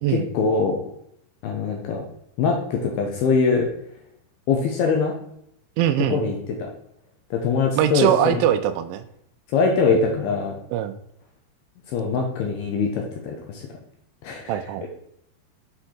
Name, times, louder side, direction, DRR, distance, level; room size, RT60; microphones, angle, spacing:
voice 1, 0.1-0.8 1.4-2.0 2.4-3.7 4.5-5.1 6.1-6.4 7.3-8.4 9.5-10.5 11.9-13.7 14.2-14.6, left 4 dB, 75° left, 1 dB, 2.4 m, -22 dB
voice 2, 5.8-6.2 7.8-9.1 10.7-11.0 14.5-14.9, right 11 dB, 85° right, 10 dB, 3.0 m, -21 dB
7.9 x 4.8 x 4.3 m, 0.74 s
omnidirectional pair, 5.4 m